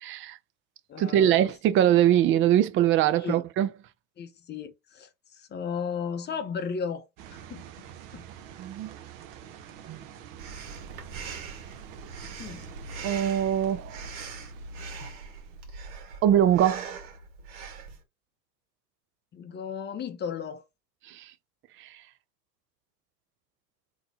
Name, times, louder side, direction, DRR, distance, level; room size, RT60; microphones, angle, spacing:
voice 1, 0.0-0.4 1.0-3.7 8.6-8.9 9.9-10.0 13.0-14.0 16.2-16.9 21.1-21.3 21.8-22.0, right 11 dB, 25° right, 0.5 m, -22 dB
voice 2, 0.9-1.5 3.2-3.4 4.2-5.1 5.3-7.6 8.1-8.2 12.4-12.6 19.3-20.6, left 6 dB, 20° left, 0.8 m, -35 dB
sound 1, 7.2-15.7, right 10 dB, 40° right, 0.9 m, -47 dB
Breathing, 10.4-18.0, right 4 dB, 60° right, 2.0 m, -41 dB
3.9 x 3.1 x 3.6 m
hypercardioid pair, 95°, 50 cm